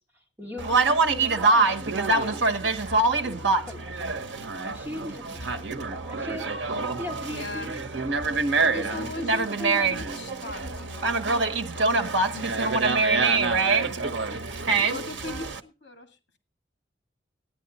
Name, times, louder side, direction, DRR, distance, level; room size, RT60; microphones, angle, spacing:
voice 1, 0.4-5.6 5.9-7.9 8.5-9.9, left 1 dB, 10° right, 2.3 m, -41 dB
Conversation, 0.6-15.6, right 3 dB, 75° right, 1.1 m, -25 dB
voice 2, 7.3-7.7 8.6-11.2 11.7-14.1 14.5-16.2, left 2 dB, 70° left, 2.1 m, -39 dB
14.0 x 10.0 x 4.1 m
head